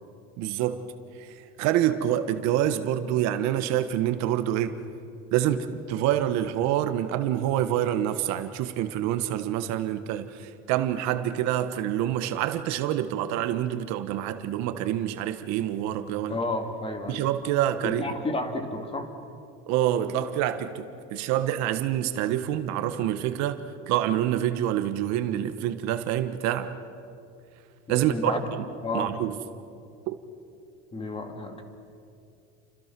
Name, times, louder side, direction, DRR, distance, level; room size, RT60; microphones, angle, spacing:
voice 1, 0.4-0.8 1.2-1.3 1.6-4.8 5.3-16.4 17.1-18.1 19.7-26.7 27.9-28.6 28.9-29.4 30.1-30.2, right 11 dB, 65° right, 1.4 m, -27 dB
voice 2, 16.3-17.3 17.8-19.1 27.9-28.4 28.8-29.1 30.9-31.6, left 2 dB, 20° left, 2.3 m, -31 dB
29.5 x 25.5 x 6.1 m
cardioid pair, 145°, 29 cm